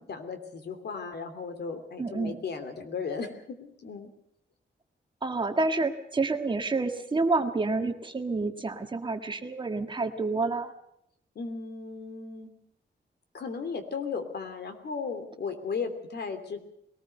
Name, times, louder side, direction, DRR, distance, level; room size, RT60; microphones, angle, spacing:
voice 1, 0.0-4.1 11.3-12.5 13.3-16.6, left 5 dB, 65° left, 8 dB, 3.0 m, -36 dB
voice 2, 2.0-2.4 5.2-10.7, right 3 dB, 25° right, 6 dB, 1.6 m, -28 dB
21.5 x 19.5 x 6.7 m, 0.74 s
wide cardioid pair, 165°, 19 cm